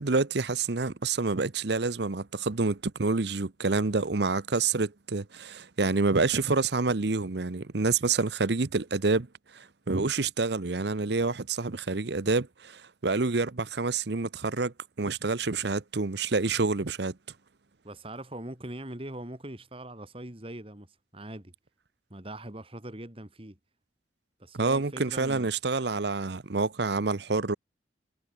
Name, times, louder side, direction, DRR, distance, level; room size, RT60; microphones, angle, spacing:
voice 1, 0.0-9.3 9.5-17.2 24.5-27.5, right 3 dB, 60° right, 0.8 m, -28 dB
voice 2, 17.8-21.5 22.1-23.6 24.4-25.5, right 1 dB, 30° right, 2.2 m, -41 dB
head